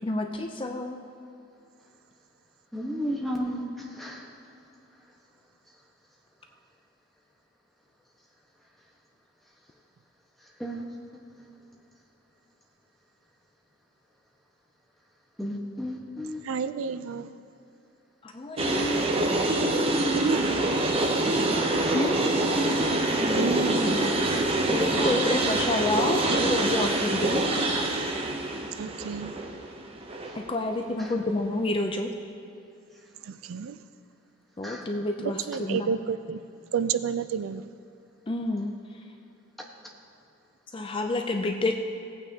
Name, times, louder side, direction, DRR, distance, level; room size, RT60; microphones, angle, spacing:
voice 1, 0.0-1.0 18.2-19.1 21.9-22.2 24.7-27.4 30.4-32.1 34.6-36.0 38.3-38.7 40.7-41.8, left 2 dB, 25° left, 4 dB, 0.4 m, -29 dB
voice 2, 2.7-3.6 3.9-4.2 10.6-10.8 15.4-16.4 23.2-24.0 31.0-31.1 34.6-34.8, equal, ahead, -3 dB, 1.1 m, -32 dB
voice 3, 16.4-17.3 20.2-20.6 23.3-23.9 28.7-29.3 33.2-33.8 35.2-36.4 36.7-37.7, right 7 dB, 75° right, 13 dB, 0.4 m, -30 dB
sound 1, 18.6-30.4, right 2 dB, 25° right, 0.6 m, -25 dB
17.0 x 9.0 x 2.8 m, 2.7 s
head